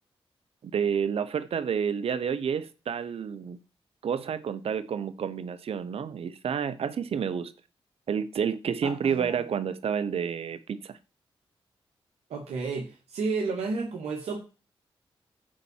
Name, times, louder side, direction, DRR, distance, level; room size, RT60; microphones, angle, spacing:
voice 1, 0.6-3.6 4.0-7.5 8.1-10.9, right 7 dB, 70° right, 0.9 m, -29 dB
voice 2, 8.8-9.4 12.3-14.4, right 4 dB, 85° right, 2.0 m, -32 dB
10.0 x 4.2 x 7.3 m
supercardioid pair, 50°, 10 cm